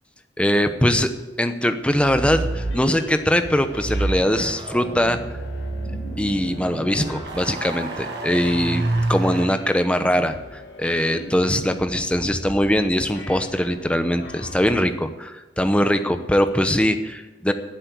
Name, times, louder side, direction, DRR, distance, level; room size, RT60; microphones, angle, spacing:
voice 1, 0.4-1.1 1.4-5.2 6.2-17.5, equal, 5° left, 8 dB, 0.8 m, -21 dB
sound 1, 1.9-2.9 3.7-9.7, right 2 dB, 25° right, 0.4 m, -29 dB
sound 2, 2.4-14.8, left 1 dB, 75° left, 2.3 m, -39 dB
sound 3, 7.2-9.5, right 3 dB, 60° right, 1.5 m, -36 dB
14.0 x 7.6 x 8.3 m, 1.1 s
head